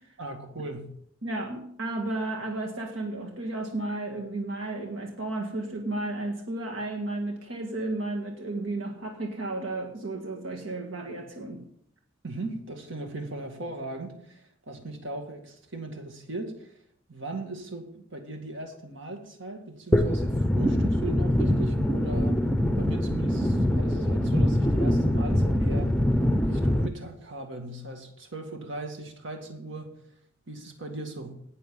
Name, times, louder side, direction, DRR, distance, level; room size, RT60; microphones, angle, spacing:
voice 1, 0.2-0.9 12.2-16.8 17.1-22.4 22.8-25.9 26.5-29.9 30.5-31.3, right 2 dB, 65° right, 4 dB, 2.2 m, -38 dB
voice 2, 1.2-11.6, right 2 dB, 85° right, 1 dB, 1.7 m, -33 dB
sound 1, 19.9-26.9, left 1 dB, 5° left, 0.7 m, -24 dB
18.5 x 6.8 x 5.4 m, 0.68 s
head